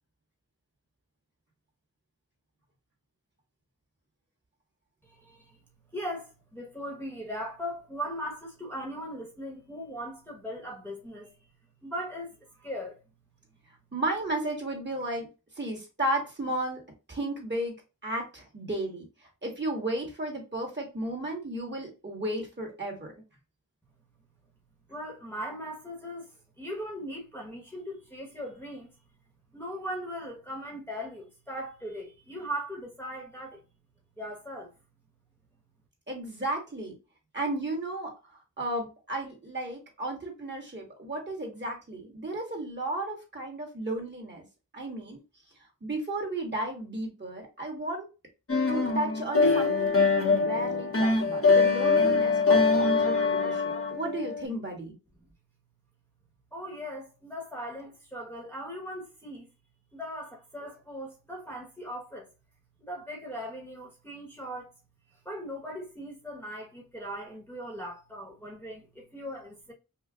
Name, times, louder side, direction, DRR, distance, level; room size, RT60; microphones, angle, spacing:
voice 1, 5.0-5.6 5.9-11.3 11.8-13.0 24.9-29.0 29.5-33.6 34.2-34.7 56.5-59.5 59.9-62.3 62.8-64.7 65.1-69.7, equal, 5° left, 1.3 m, -39 dB
voice 2, 13.9-15.3 15.6-16.8 17.1-17.7 18.0-19.0 19.4-23.1 36.1-36.9 37.3-38.1 38.6-44.4 44.7-45.2 45.8-48.1 48.7-54.9, right 1 dB, 35° right, 1.8 m, -33 dB
sound 1, 48.5-54.4, left 4 dB, 40° left, 1.0 m, -23 dB
5.5 x 2.3 x 2.4 m
wide cardioid pair, 80°, 33 cm